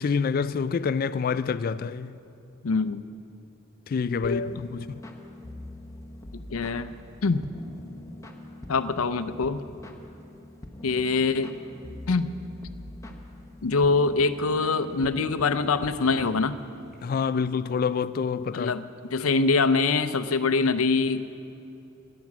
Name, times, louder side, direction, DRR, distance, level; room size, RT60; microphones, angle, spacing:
voice 1, 0.0-2.2 3.9-4.9 17.0-18.7, left 5 dB, 45° left, 0.3 m, -27 dB
voice 2, 2.6-3.0 4.2-4.6 6.3-7.0 7.2-7.4 8.7-9.6 10.8-11.5 12.1-12.3 13.6-16.5 18.5-18.8 19.1-21.4, left 4 dB, 85° left, 0.6 m, -24 dB
sound 1, 4.2-17.0, left 1 dB, 15° left, 1.0 m, -44 dB
17.0 x 10.5 x 6.0 m
head